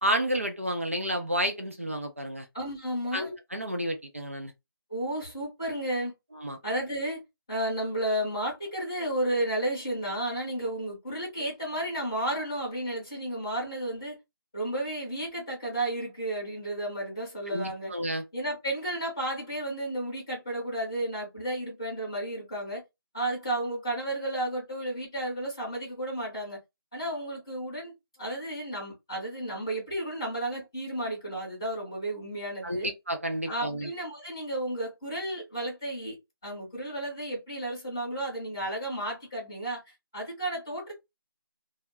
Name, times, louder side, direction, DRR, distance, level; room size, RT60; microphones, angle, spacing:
voice 1, 0.0-2.5 3.1-4.5 6.4-6.6 17.5-18.2 32.6-33.9, equal, 35° right, 0.5 m, -30 dB
voice 2, 2.5-3.3 4.9-6.1 6.6-7.2 7.5-14.1 14.5-17.9 18.3-22.8 23.1-26.6 26.9-27.9 28.2-32.9 33.5-36.2 36.4-40.9, right 1 dB, 10° left, 0.8 m, -32 dB
2.2 x 2.1 x 3.2 m
figure-of-eight pair, 180°, 12 cm